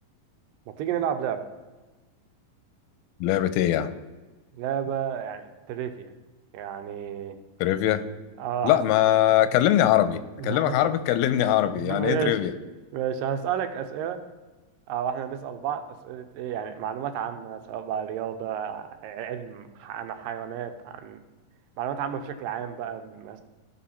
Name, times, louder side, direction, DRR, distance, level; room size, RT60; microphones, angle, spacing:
voice 1, 0.8-1.4 4.5-6.1 6.5-7.4 8.4-8.8 10.4-10.9 11.8-12.4 12.9-14.2 14.9-21.2 21.8-23.4, right 8 dB, 85° right, 8 dB, 2.3 m, -31 dB
voice 2, 3.2-3.9 7.6-8.0 8.6-12.5, left 12 dB, 90° left, 12 dB, 2.4 m, -22 dB
14.0 x 5.6 x 4.3 m, 1.2 s
omnidirectional pair, 4.1 m